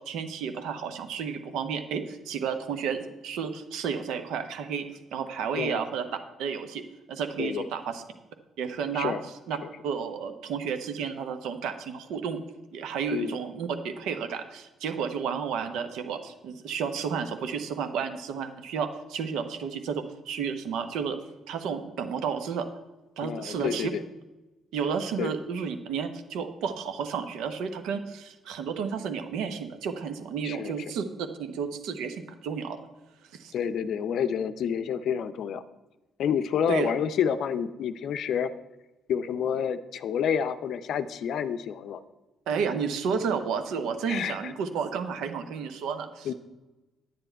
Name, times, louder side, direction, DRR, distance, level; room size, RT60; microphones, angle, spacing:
voice 1, 0.0-4.9 5.1-6.1 6.4-8.0 8.6-9.1 9.5-9.6 9.8-12.4 12.7-21.2 21.5-22.7 23.2-23.9 24.7-32.8 33.4-33.5 36.7-36.9 42.5-46.3, right 6 dB, 70° right, 8 dB, 0.9 m, -32 dB
voice 2, 23.2-24.0 25.2-25.3 30.4-30.7 33.5-35.6 36.2-38.5 39.1-42.0 44.1-44.5 46.2-46.3, left 8 dB, 60° left, 12 dB, 0.5 m, -29 dB
9.8 x 9.2 x 4.5 m, 1.1 s
hypercardioid pair, 45°, 0 cm